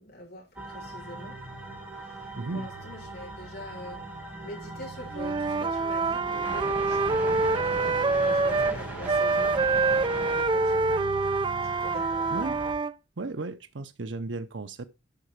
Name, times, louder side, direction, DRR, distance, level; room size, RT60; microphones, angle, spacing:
voice 1, 0.0-1.5 2.0-4.1 4.4-9.6 10.1-11.4 11.8-12.3, left 1 dB, 55° left, 6.6 m, -44 dB
sound 1, 0.5-12.7, right 2 dB, 10° right, 4.9 m, -38 dB
voice 2, 2.4-2.7 12.3-12.6 13.2-14.9, right 3 dB, 80° right, 0.8 m, -35 dB
Wind instrument woodwind instrument, 5.1-8.8 9.0-12.9, right 3 dB, 25° right, 0.4 m, -26 dB
10.5 x 6.7 x 4.7 m
head